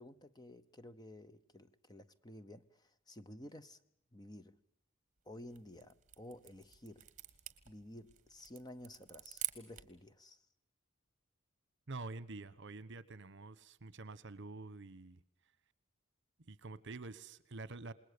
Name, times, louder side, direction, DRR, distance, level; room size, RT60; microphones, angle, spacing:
voice 1, 0.0-3.8 4.1-4.6 5.2-7.1 7.7-10.5, left 1 dB, 20° left, 0.9 m, -53 dB
sound 1, 5.3-10.0, right 14 dB, 35° right, 1.8 m, -48 dB
voice 2, 11.9-15.2 16.5-17.9, right 3 dB, 55° right, 1.1 m, -47 dB
27.5 x 21.0 x 6.8 m
head